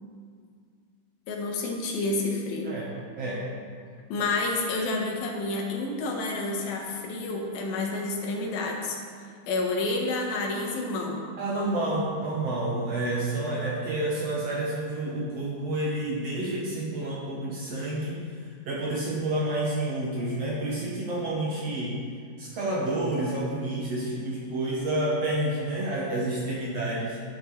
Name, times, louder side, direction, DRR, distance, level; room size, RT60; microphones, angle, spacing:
voice 1, 1.3-2.7 4.1-9.0 9.5-11.3, left 2 dB, 90° left, 0 dB, 3.2 m, -29 dB
voice 2, 3.2-3.5 11.4-18.2 18.6-22.0 22.4-27.2, right 1 dB, 60° right, -4 dB, 1.8 m, -29 dB
11.0 x 11.0 x 3.2 m, 2.1 s
omnidirectional pair, 4.1 m